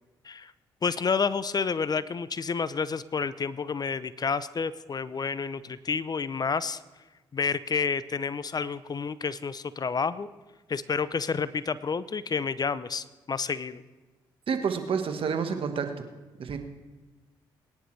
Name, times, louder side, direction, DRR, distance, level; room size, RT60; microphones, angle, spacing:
voice 1, 0.8-6.8 7.3-10.3 10.7-13.8, left 5 dB, 40° left, 16 dB, 0.6 m, -29 dB
voice 2, 14.5-16.1 16.4-16.6, right 6 dB, 60° right, 6 dB, 1.5 m, -29 dB
22.0 x 10.0 x 3.3 m, 1.2 s
hypercardioid pair, 50°, 11 cm